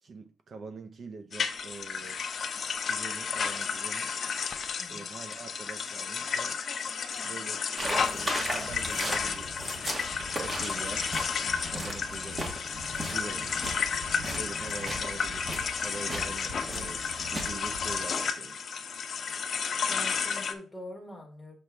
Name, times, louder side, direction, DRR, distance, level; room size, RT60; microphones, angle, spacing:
voice 1, 0.0-2.2 2.9-4.1 4.9-6.6 7.2-9.9 10.2-11.1 11.7-12.6 13.1-13.5 14.3-18.6, right 3 dB, 40° right, 0.6 m, -44 dB
sound 1, 1.3-20.5, left 6 dB, 40° left, 0.6 m, -32 dB
voice 2, 4.8-5.1 19.9-21.5, left 1 dB, 10° left, 1.4 m, -44 dB
sound 2, 7.8-18.0, right 1 dB, 20° right, 1.3 m, -37 dB
6.5 x 5.8 x 3.4 m
cardioid pair, 150°, 0 cm